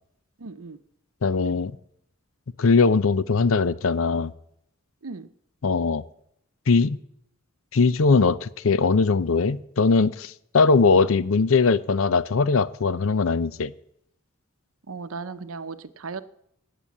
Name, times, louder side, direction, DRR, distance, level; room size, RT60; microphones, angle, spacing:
voice 1, 0.4-0.8 5.0-5.3 14.9-16.2, right 4 dB, 80° right, 13 dB, 0.7 m, -36 dB
voice 2, 1.2-1.7 2.6-4.3 5.6-6.0 6.7-7.0 7.7-13.7, left 4 dB, 70° left, 17 dB, 0.6 m, -20 dB
18.0 x 6.9 x 7.2 m, 0.76 s
head